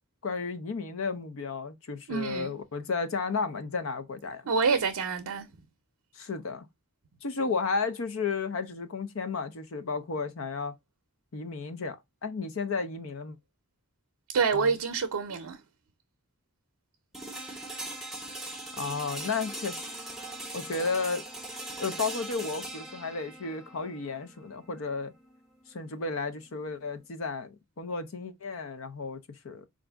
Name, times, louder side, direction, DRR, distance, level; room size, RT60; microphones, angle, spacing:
voice 1, 0.2-4.4 6.1-6.7 7.2-10.7 11.3-12.0 12.2-13.4 14.5-14.7 18.8-19.9 20.5-21.2 21.8-25.1 25.7-29.7, left 4 dB, 60° left, 0.6 m, -33 dB
voice 2, 2.1-2.5 4.5-5.5 14.3-15.6, right 5 dB, 90° right, 0.5 m, -27 dB
sound 1, 17.1-27.0, right 1 dB, ahead, 0.7 m, -41 dB
4.1 x 2.5 x 3.4 m
head